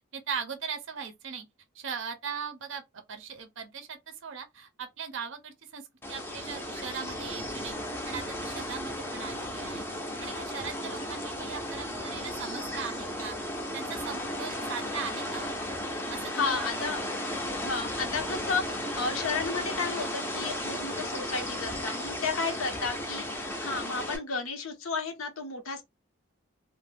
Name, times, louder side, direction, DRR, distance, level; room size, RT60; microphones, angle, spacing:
voice 1, 0.1-1.5 1.7-2.8 3.1-7.8 8.1-9.9 10.2-13.4 13.7-15.6 16.1-16.7, right 6 dB, 60° right, 0.5 m, -39 dB
sound 1, 6.0-24.2, left 1 dB, 10° left, 0.5 m, -35 dB
voice 2, 16.3-17.0 17.6-25.8, left 4 dB, 75° left, 0.7 m, -33 dB
2.4 x 2.0 x 3.2 m
head